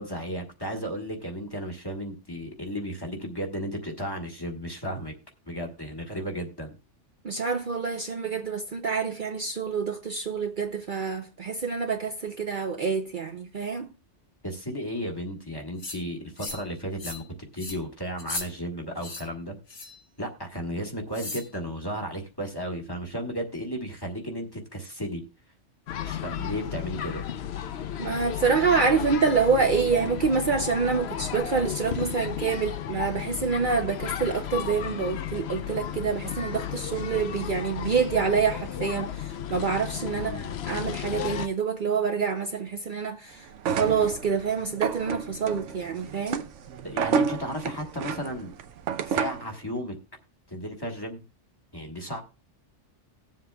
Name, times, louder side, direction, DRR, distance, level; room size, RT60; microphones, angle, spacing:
voice 1, 0.0-5.1 5.5-6.7 14.4-17.2 17.5-19.6 20.2-25.2 26.0-27.2 40.1-40.5 46.8-48.5 49.1-49.9 50.5-51.2 51.7-52.2, equal, 20° left, 1.6 m, -34 dB
voice 2, 7.2-13.9 28.0-46.5, right 5 dB, 50° right, 0.8 m, -27 dB
sound 1, 15.8-16.0 16.4-16.7 17.0-17.3 17.6-17.8 18.2-18.5 19.0-19.2 19.7-20.0 21.1-21.5, left 2 dB, 85° left, 2.1 m, -36 dB
sound 2, 25.9-41.5, left 10 dB, 65° left, 0.9 m, -34 dB
sound 3, 43.5-49.5, right 6 dB, 85° right, 1.0 m, -30 dB
19.0 x 7.5 x 2.3 m
omnidirectional pair, 1.2 m